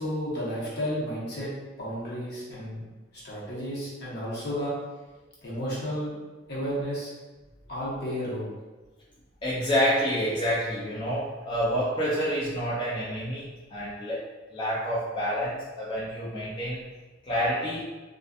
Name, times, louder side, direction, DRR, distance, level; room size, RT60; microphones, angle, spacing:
voice 1, 0.0-2.8 3.1-4.7 5.4-6.1 6.5-7.1 7.7-8.5, equal, 55° left, -7 dB, 0.9 m, -32 dB
voice 2, 9.4-14.2 14.5-16.9 17.3-17.9, equal, 25° left, -9 dB, 0.4 m, -28 dB
2.5 x 2.3 x 2.3 m, 1.2 s
head